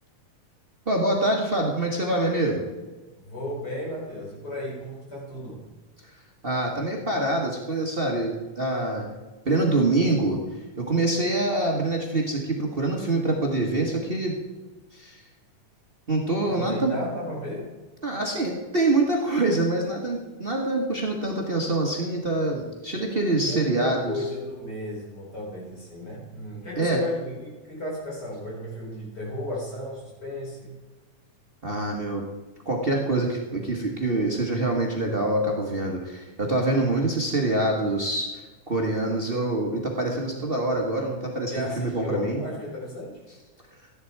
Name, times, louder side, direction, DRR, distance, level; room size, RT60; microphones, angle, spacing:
voice 1, 0.9-2.6 6.4-9.0 9.4-10.4 10.8-14.3 14.9-15.2 16.1-16.9 18.0-24.3 26.8-27.0 31.6-32.2 32.6-42.4, right 2 dB, 85° right, 0 dB, 0.5 m, -25 dB
voice 2, 3.2-5.7 16.5-17.7 23.4-30.8 41.5-43.2, left 1 dB, 30° left, -4 dB, 5.2 m, -34 dB
14.0 x 10.5 x 4.6 m, 1.2 s
omnidirectional pair, 3.6 m